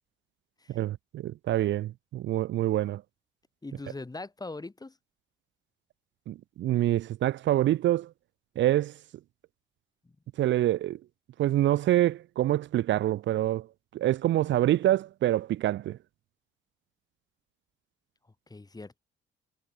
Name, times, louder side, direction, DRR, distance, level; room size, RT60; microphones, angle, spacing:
voice 1, 0.7-3.0 6.3-8.1 8.6-9.0 10.4-11.0 11.4-13.7 13.9-16.0, right 13 dB, 70° right, 0.6 m, -26 dB
voice 2, 3.6-5.0 10.0-10.2 18.5-19.0, left 3 dB, 20° left, 6.0 m, -41 dB
cardioid pair, 90°, 20 cm